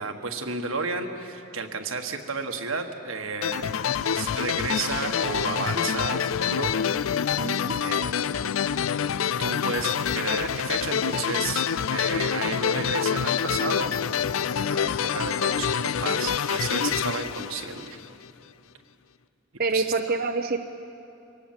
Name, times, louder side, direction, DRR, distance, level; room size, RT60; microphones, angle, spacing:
voice 1, 0.0-3.7 4.1-7.1 7.8-8.1 9.4-13.9 14.6-18.0 19.7-19.9, right 4 dB, 85° right, 5 dB, 1.5 m, -32 dB
sound 1, 3.4-18.3, left 7 dB, 80° left, 0.4 m, -26 dB
voice 2, 7.4-7.8 19.6-20.6, right 3 dB, 45° right, 6 dB, 0.7 m, -26 dB
24.0 x 18.5 x 7.5 m, 2.7 s
head